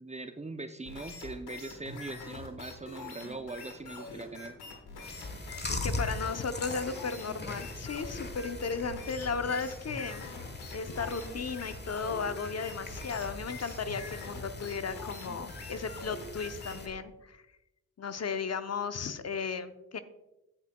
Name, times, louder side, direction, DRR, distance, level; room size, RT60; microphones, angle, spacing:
voice 1, 0.0-4.6, right 2 dB, 20° right, 9 dB, 0.6 m, -41 dB
sound 1, 0.9-17.0, left 3 dB, 80° left, 1.6 m, -45 dB
Chewing mastication, 5.0-16.9, left 2 dB, 25° left, 1.3 m, -41 dB
voice 2, 5.7-10.2 10.7-17.4 18.0-20.0, left 5 dB, 40° left, 10 dB, 0.7 m, -35 dB
16.0 x 5.8 x 2.3 m, 0.96 s
supercardioid pair, 40°, 38 cm